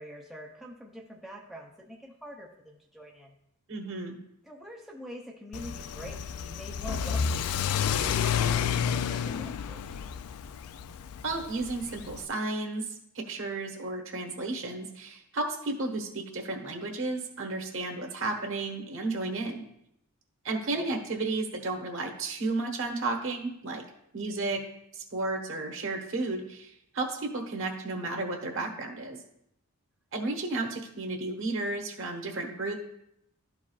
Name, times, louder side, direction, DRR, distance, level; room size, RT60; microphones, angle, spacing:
voice 1, 0.0-3.3 4.4-10.0 20.5-20.9, equal, ahead, -2 dB, 0.6 m, -45 dB
voice 2, 3.7-4.2 11.2-12.9 13.1-19.7 20.4-23.8 24.1-24.6 24.9-29.2 30.1-32.7, right 2 dB, 60° right, 2 dB, 1.2 m, -33 dB
Car / Accelerating revving vroom, 5.5-12.2, left 8 dB, 75° left, 0.3 m, -30 dB
12.5 x 4.7 x 2.4 m, 0.79 s
head